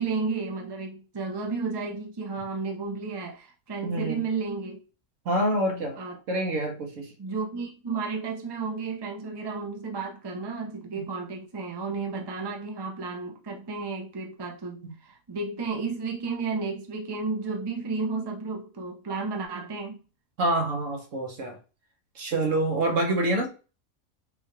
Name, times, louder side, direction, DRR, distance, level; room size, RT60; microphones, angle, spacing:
voice 1, 0.0-4.8 6.0-6.2 7.2-20.0, right 4 dB, 25° right, 0.6 m, -32 dB
voice 2, 3.8-4.3 5.2-6.0 6.3-7.1 10.9-11.1 14.8-14.9 20.4-21.6 22.1-23.5, right 1 dB, 70° right, 1.4 m, -26 dB
5.4 x 2.4 x 3.2 m
omnidirectional pair, 1.4 m